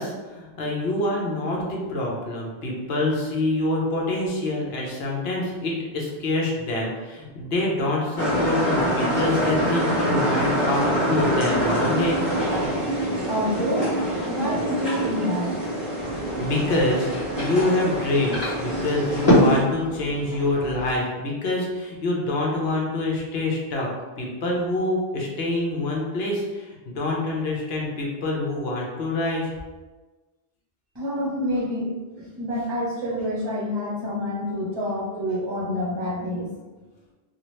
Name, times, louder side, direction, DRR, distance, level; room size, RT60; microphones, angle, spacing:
voice 1, 0.0-12.2 16.4-17.1 17.4-23.9 24.2-29.5, left 2 dB, 75° left, -2 dB, 1.0 m, -26 dB
Dishwasher Working, 8.2-19.6, equal, ahead, 1.2 m, -25 dB
voice 2, 13.3-13.9 14.3-15.7 30.9-36.5, equal, 25° right, -5 dB, 0.8 m, -27 dB
sound 1, 15.9-21.0, equal, 40° left, 1.1 m, -26 dB
2.8 x 2.4 x 3.1 m, 1.2 s
omnidirectional pair, 1.0 m